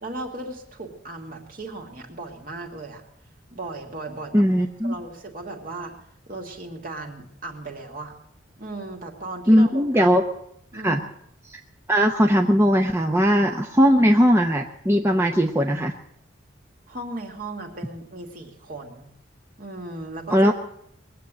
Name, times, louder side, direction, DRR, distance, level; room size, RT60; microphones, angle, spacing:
voice 1, 0.0-3.0 3.5-4.5 4.8-5.9 6.3-8.1 8.6-10.2 10.7-11.0 16.9-19.1 19.6-20.5, right 2 dB, 45° right, 2 dB, 2.4 m, -36 dB
voice 2, 4.3-4.9 9.5-10.2 10.8-11.0 11.9-15.9 20.3-20.5, equal, 15° right, 2 dB, 0.8 m, -19 dB
21.0 x 8.4 x 7.7 m, 0.74 s
head